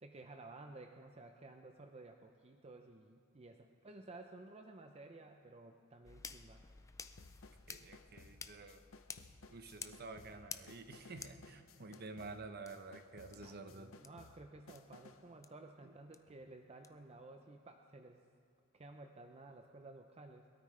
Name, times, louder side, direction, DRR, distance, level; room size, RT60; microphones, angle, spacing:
voice 1, 0.0-6.6 13.3-18.2 18.7-20.5, right 2 dB, 30° right, 4 dB, 0.6 m, -54 dB
sound 1, 6.0-12.0 12.7-12.8 13.3-13.4 14.0-14.1 14.7-14.8 15.4-15.5 16.1-16.2 16.8-16.9, left 5 dB, 15° left, 0.4 m, -52 dB
sound 2, 7.2-15.3, left 3 dB, 70° left, 0.7 m, -60 dB
voice 2, 7.7-8.8 9.5-13.9 15.8-15.9, right 3 dB, 50° right, 7 dB, 0.9 m, -50 dB
22.5 x 13.0 x 3.3 m, 2.4 s
head